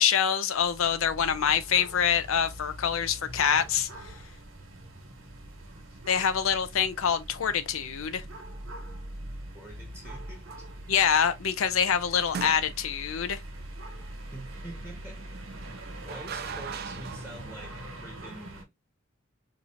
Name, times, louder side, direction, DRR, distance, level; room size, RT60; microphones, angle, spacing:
voice 1, 0.0-3.9 6.1-8.2 10.9-13.4, left 8 dB, 80° left, 0.5 m, -25 dB
sound 1, 0.5-18.6, right 1 dB, 85° right, 1.3 m, -43 dB
voice 2, 9.5-10.7 14.3-15.2 16.0-18.7, right 1 dB, 5° left, 0.9 m, -46 dB
sound 2, 10.5-10.8 12.3-13.1 15.6-17.4, right 6 dB, 50° right, 0.5 m, -39 dB
4.7 x 2.7 x 2.4 m
head